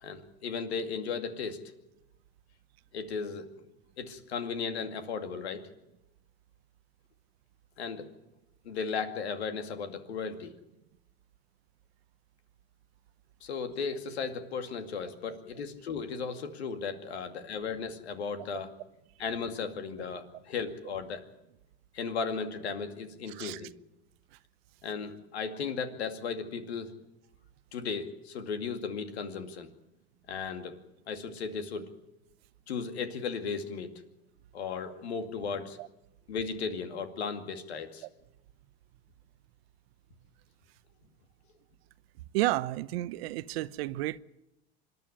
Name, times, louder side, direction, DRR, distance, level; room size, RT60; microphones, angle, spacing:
voice 1, 0.0-1.7 2.9-3.5 4.0-5.6 7.8-8.1 8.6-10.5 13.4-18.7 19.2-21.2 21.9-23.8 24.8-26.9 27.7-29.7 30.3-30.8 31.1-32.0 32.7-33.9 34.5-35.8 36.3-38.1, left 5 dB, 90° left, 2.4 m, -35 dB
voice 2, 23.3-23.6 35.8-35.9 38.0-38.1 42.3-44.2, right 17 dB, 70° right, 0.9 m, -31 dB
26.0 x 11.0 x 9.9 m
hypercardioid pair, 100°, 31 cm